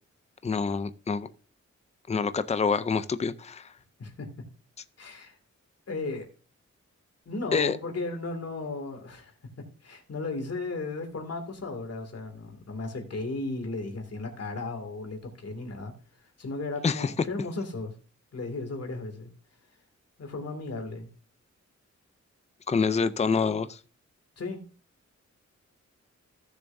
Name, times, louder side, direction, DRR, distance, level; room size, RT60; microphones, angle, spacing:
voice 1, 0.4-1.3 2.1-3.7 7.5-7.8 16.8-17.1 22.7-23.8, left 5 dB, 25° left, 0.5 m, -26 dB
voice 2, 5.0-5.4 5.9-6.3 7.3-9.3 9.8-15.9 16.4-17.9 18.3-19.3 20.2-21.1 24.4-24.6, left 3 dB, 55° left, 2.4 m, -35 dB
15.5 x 6.9 x 2.6 m
wide cardioid pair, 120°, 29 cm